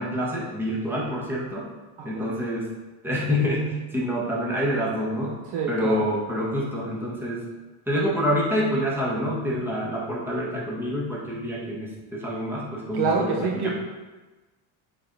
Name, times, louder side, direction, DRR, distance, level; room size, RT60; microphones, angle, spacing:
voice 1, 0.0-1.7 2.0-2.7 3.0-7.5 7.9-13.7, equal, 5° right, -5 dB, 1.4 m, -27 dB
voice 2, 2.0-2.5 5.5-6.0 12.9-13.7, right 5 dB, 70° right, -1 dB, 1.1 m, -26 dB
8.5 x 3.9 x 4.1 m, 1.2 s
cardioid pair, 155°, 41 cm